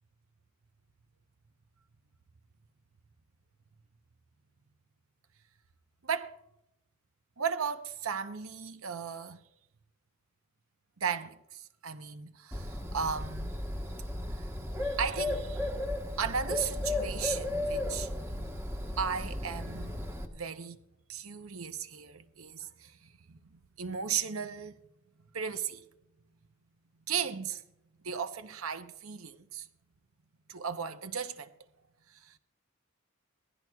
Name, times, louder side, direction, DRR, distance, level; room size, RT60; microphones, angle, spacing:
voice 1, 6.0-6.4 7.4-9.4 11.0-13.5 14.3-14.5 14.8-15.7 16.2-18.6 19.0-20.0 20.3-20.8 21.1-23.4 23.8-24.8 25.3-25.8 27.1-27.6 28.0-29.7 30.5-31.5 32.1-32.4, right 6 dB, 70° right, 0.8 m, -36 dB
Bird, 12.5-20.3, left 1 dB, 15° right, 1.2 m, -35 dB
18.5 x 15.0 x 2.3 m
head